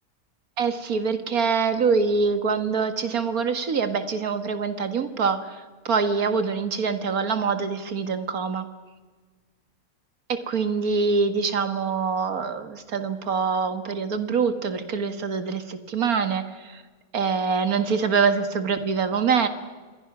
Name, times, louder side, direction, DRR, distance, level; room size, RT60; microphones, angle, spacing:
voice 1, 0.6-8.7 10.3-16.8 17.1-19.5, right 5 dB, 85° right, 9 dB, 2.1 m, -25 dB
27.5 x 22.0 x 6.1 m, 1.4 s
omnidirectional pair, 1.5 m